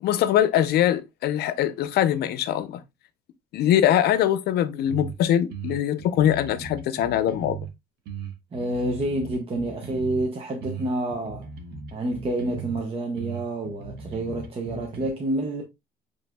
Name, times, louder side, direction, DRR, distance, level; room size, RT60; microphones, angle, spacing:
voice 1, 0.0-2.8 3.5-7.6, left 11 dB, 75° left, 0.7 m, -22 dB
sound 1, 4.9-5.2 5.5-7.7 8.1-10.3 10.6-12.8 13.2-15.1, right 6 dB, 75° right, 1.1 m, -37 dB
voice 2, 8.5-11.5 11.9-15.6, right 1 dB, 35° right, 1.0 m, -28 dB
7.2 x 3.3 x 2.2 m
cardioid pair, 110°, 17 cm